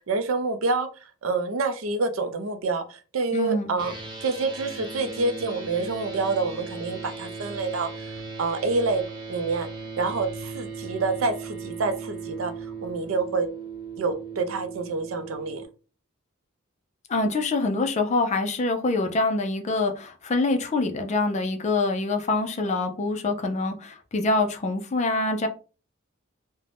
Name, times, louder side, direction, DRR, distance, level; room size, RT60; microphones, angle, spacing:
voice 1, 0.1-0.9 1.2-3.9 4.2-8.1 8.4-9.0 9.3-9.7 10.0-12.5 12.8-13.5 14.0-15.6, right 3 dB, 80° right, 0.5 m, -27 dB
voice 2, 3.3-3.7 17.1-25.5, left 2 dB, 35° left, 0.4 m, -25 dB
sound 1, 3.8-15.6, right 4 dB, 20° right, 0.7 m, -37 dB
2.5 x 2.1 x 3.3 m
head